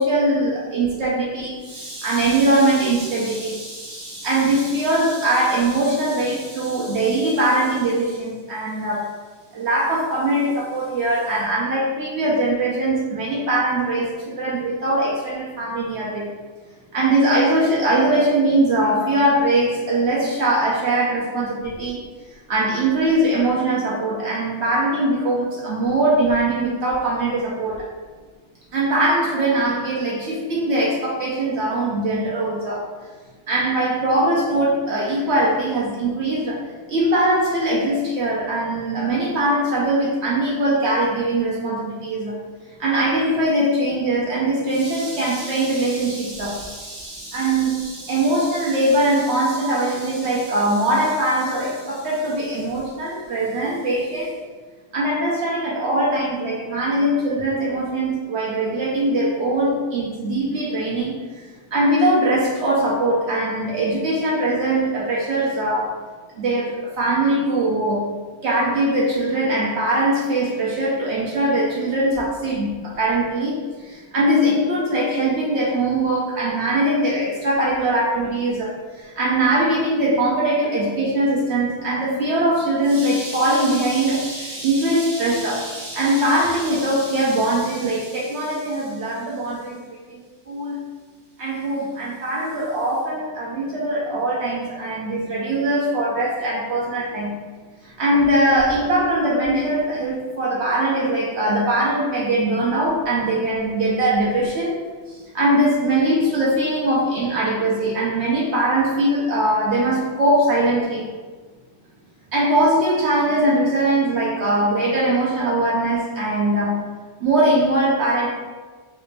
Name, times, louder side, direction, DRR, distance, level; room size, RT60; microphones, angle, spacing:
voice 1, 0.0-9.0 9.5-16.3 16.9-22.0 22.5-27.8 28.7-32.9 33.5-36.6 36.9-42.3 42.8-54.3 54.9-61.2 61.7-65.9 66.4-68.1 68.4-73.5 73.9-89.8 90.1-90.2 90.5-90.8 91.4-97.4 98.0-104.8 105.3-111.1 112.3-116.8 117.2-118.3, right 1 dB, 70° right, -5 dB, 0.9 m, -21 dB
3.3 x 2.5 x 3.1 m, 1.4 s
omnidirectional pair, 1.2 m